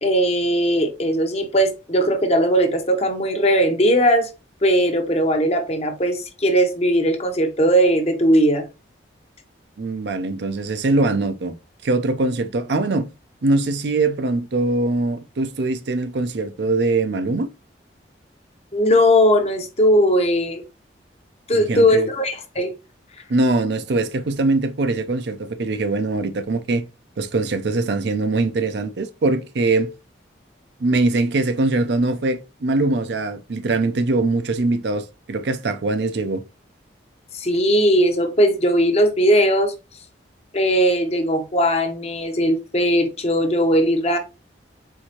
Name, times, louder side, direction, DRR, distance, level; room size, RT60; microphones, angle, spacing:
voice 1, 0.0-4.3 4.6-8.7 18.7-20.6 21.5-22.7 37.3-39.7 40.5-44.2, equal, 35° left, 0.8 m, -18 dB
voice 2, 9.8-11.5 11.8-13.1 13.4-17.5 21.5-22.1 23.3-26.8 27.2-29.9 30.8-36.4, right 2 dB, 65° right, 0.5 m, -22 dB
4.6 x 3.4 x 2.9 m
head